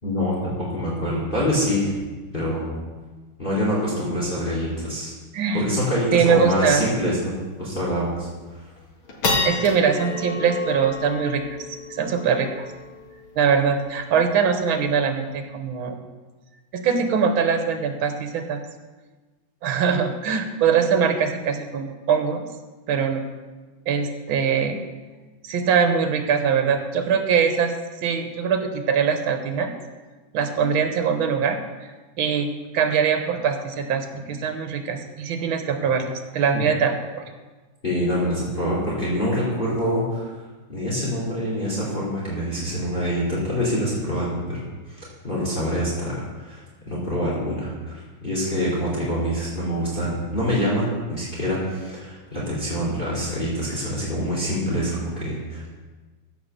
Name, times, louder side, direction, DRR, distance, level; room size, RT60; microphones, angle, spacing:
voice 1, 0.0-1.9 2.3-2.7 3.4-5.1 5.5-7.3 7.6-8.3 37.8-40.3 40.7-46.6 46.9-55.7, equal, 25° left, -6 dB, 2.9 m, -25 dB
sound 1, 5.7-5.8 6.1-6.2 6.6-6.8 7.3-7.4 8.0-8.3 8.8-15.3, left 3 dB, 75° left, 2.6 m, -31 dB
voice 2, 6.1-6.8 9.4-11.4 11.9-12.6 13.4-16.0 16.7-18.6 19.6-22.5 22.9-23.2 23.9-24.8 25.4-27.7 28.0-29.7 30.3-31.6 32.2-37.2, right 6 dB, 75° right, 6 dB, 1.9 m, -22 dB
15.0 x 5.6 x 6.7 m, 1.3 s
omnidirectional pair, 2.3 m